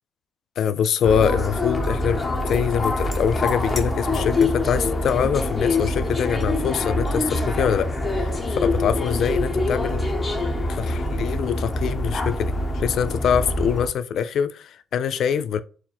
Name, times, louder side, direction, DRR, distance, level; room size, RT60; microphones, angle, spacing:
voice 1, 0.6-10.1 10.7-15.6, left 8 dB, 70° left, 0.3 m, -24 dB
sound 1, 1.0-13.9, left 2 dB, 30° left, 0.9 m, -25 dB
4.3 x 2.1 x 4.1 m
cardioid pair, 90°, 0 cm